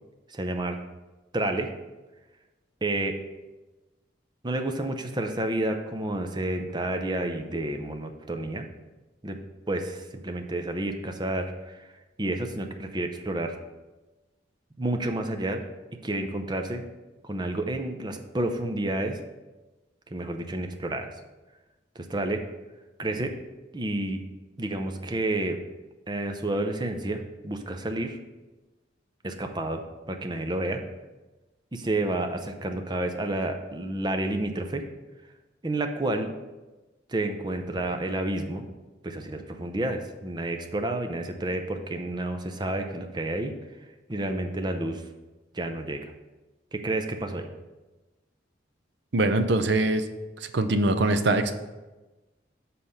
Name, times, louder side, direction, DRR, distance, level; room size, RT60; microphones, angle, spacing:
voice 1, 0.3-0.8 1.3-1.7 2.8-3.2 4.4-8.7 9.2-9.4 9.7-11.9 12.2-13.6 14.8-15.6 16.0-16.8 17.2-19.2 20.1-21.1 22.0-22.4 23.0-23.3 23.7-24.2 24.6-25.6 26.1-28.2 29.2-30.8 31.7-34.8 35.6-36.3 37.1-38.6 39.0-43.5 44.1-45.0 45.5-46.1 46.7-47.5, right 1 dB, 25° right, 5 dB, 0.6 m, -30 dB
voice 2, 49.1-50.0 50.5-51.5, right 2 dB, 65° right, 8 dB, 0.6 m, -22 dB
7.3 x 4.2 x 6.5 m, 1.1 s
head